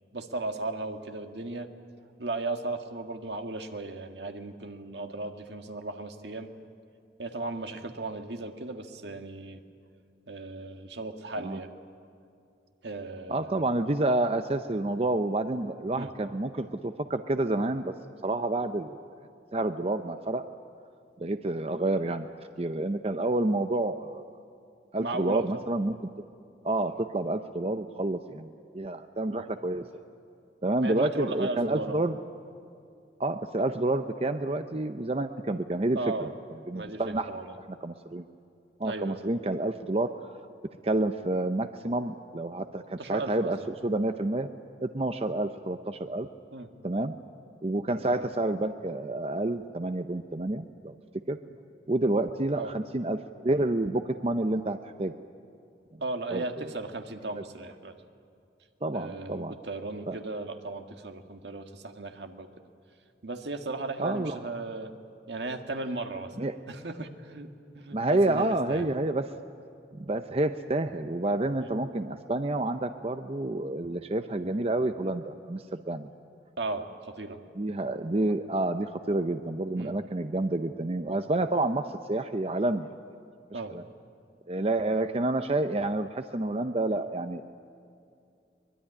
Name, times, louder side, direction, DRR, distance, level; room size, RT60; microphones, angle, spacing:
voice 1, 0.1-1.7 2.2-6.5 7.2-9.6 10.3-11.7 12.8-13.5 15.9-16.1 21.2-21.3 25.0-25.4 29.3-29.4 30.8-32.0 35.9-36.3 36.7-37.5 38.8-39.2 43.0-43.7 46.5-46.7 48.0-48.3 51.4-51.5 52.5-52.7 56.0-57.9 58.9-62.5 63.2-64.9 65.3-66.3 66.7-68.8 71.6-71.7 76.6-77.4 79.7-80.0 83.5-83.7, right 2 dB, 80° right, 5 dB, 1.8 m, -36 dB
voice 2, 13.3-17.9 18.2-19.0 19.5-20.4 21.2-22.3 22.6-24.2 24.9-26.0 26.6-29.8 30.6-32.2 33.2-36.3 36.7-37.3 37.8-38.2 38.8-40.1 40.8-43.6 43.8-44.5 44.8-46.3 46.8-47.1 47.6-50.9 51.3-51.4 51.9-55.1 55.9-56.0 56.3-56.4 58.8-59.5 60.1-60.2 64.0-64.4 66.4-66.5 67.9-69.3 69.9-76.1 77.6-82.9 83.5-83.8 84.5-87.4, right 2 dB, 35° right, 8 dB, 0.7 m, -29 dB
23.5 x 21.5 x 10.0 m, 2.5 s
head